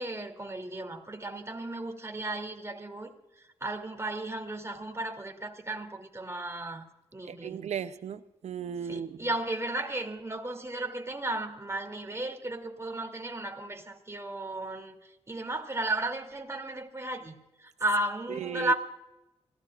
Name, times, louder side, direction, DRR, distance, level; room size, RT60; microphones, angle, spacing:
voice 1, 0.0-6.8 7.1-7.6 8.8-18.7, right 2 dB, 25° right, 2.9 m, -34 dB
voice 2, 7.3-9.3 18.3-18.7, right 8 dB, 80° right, 0.7 m, -36 dB
27.5 x 16.5 x 2.5 m
cardioid pair, 50°, 11 cm